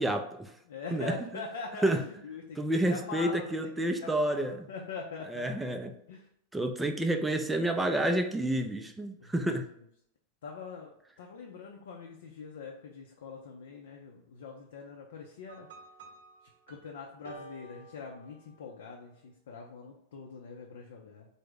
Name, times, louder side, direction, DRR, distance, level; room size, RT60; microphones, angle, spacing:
voice 1, 0.0-0.5 0.9-1.1 1.8-2.0 2.6-4.5 5.3-5.9 6.5-9.7, right 1 dB, 10° right, 6 dB, 0.4 m, -29 dB
voice 2, 0.7-5.6 6.1-6.3 9.2-9.9 10.4-15.7 16.7-21.3, left 4 dB, 70° left, 0 dB, 0.5 m, -43 dB
sound 1, 15.5-18.9, right 2 dB, 70° right, 0.6 m, -52 dB
3.4 x 2.0 x 3.6 m, 0.71 s
hypercardioid pair, 95°, 0 cm